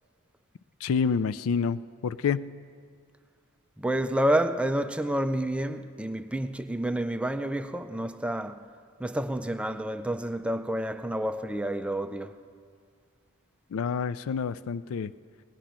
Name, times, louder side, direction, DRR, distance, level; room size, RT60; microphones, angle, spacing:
voice 1, 0.8-2.5 13.7-15.1, left 6 dB, 65° left, 0.4 m, -28 dB
voice 2, 3.8-8.5 9.0-12.3, right 1 dB, 5° right, 0.4 m, -29 dB
17.5 x 6.0 x 10.0 m
head